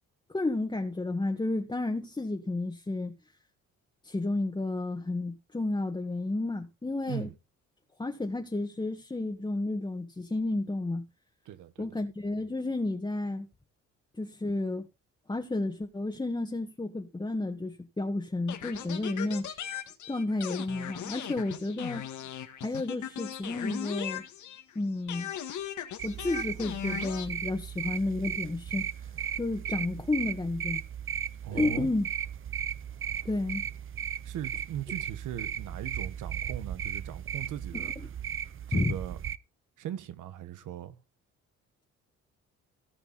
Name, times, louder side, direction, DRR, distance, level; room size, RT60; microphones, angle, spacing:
voice 1, 0.3-3.2 4.0-7.3 8.0-11.1 11.8-13.5 14.2-14.9 15.3-19.5 20.1-22.0 22.6-24.2 24.7-25.3 26.0-29.0 29.4-30.8 31.5-32.0 33.2-33.6 37.7-37.9 38.7-38.9, left 2 dB, 15° left, 1.6 m, -31 dB
voice 2, 11.4-12.0 31.4-31.9 34.2-37.9 38.7-39.2 39.8-41.0, right 11 dB, 80° right, 1.7 m, -39 dB
sound 1, 18.5-24.7 25.1-27.3, left 10 dB, 75° left, 2.1 m, -38 dB
sound 2, 26.0-39.4, right 9 dB, 45° right, 0.7 m, -36 dB
17.5 x 6.0 x 4.1 m
cardioid pair, 90°, 30 cm